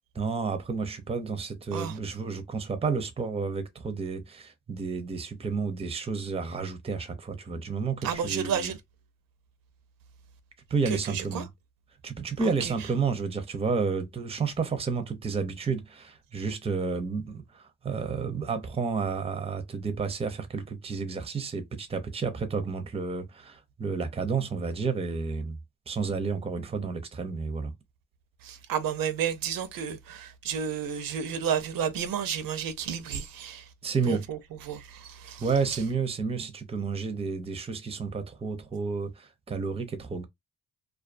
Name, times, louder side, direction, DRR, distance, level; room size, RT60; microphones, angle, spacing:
voice 1, 0.2-8.7 10.7-11.5 12.0-25.6 25.9-27.7 33.8-34.2 35.4-40.2, right 5 dB, 15° right, 0.5 m, -31 dB
voice 2, 8.0-8.8 10.9-11.4 12.4-12.7 28.4-33.6 34.1-35.4, right 8 dB, 75° right, 0.6 m, -32 dB
2.3 x 2.3 x 2.4 m
cardioid pair, 105°, 34 cm